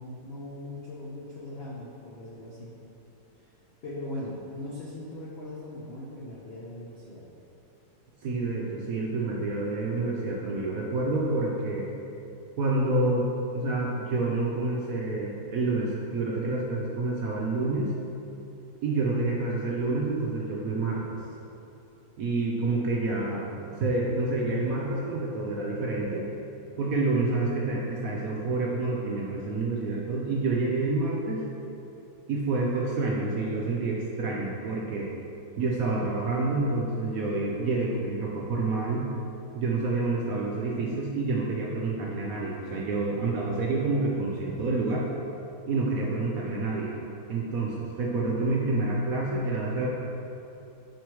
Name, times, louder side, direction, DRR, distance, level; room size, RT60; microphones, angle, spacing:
voice 1, 0.0-2.7 3.4-3.5 3.8-7.3, left 1 dB, 80° left, -6 dB, 0.5 m, -39 dB
voice 2, 8.2-11.9 12.6-13.3 13.5-17.9 18.8-21.2 22.2-26.3 26.8-31.5 32.3-35.1 35.6-39.1 39.5-45.1 45.7-47.0 47.3-49.9, right 3 dB, 80° right, -3 dB, 0.7 m, -28 dB
5.0 x 4.6 x 4.6 m, 2.8 s
omnidirectional pair, 2.2 m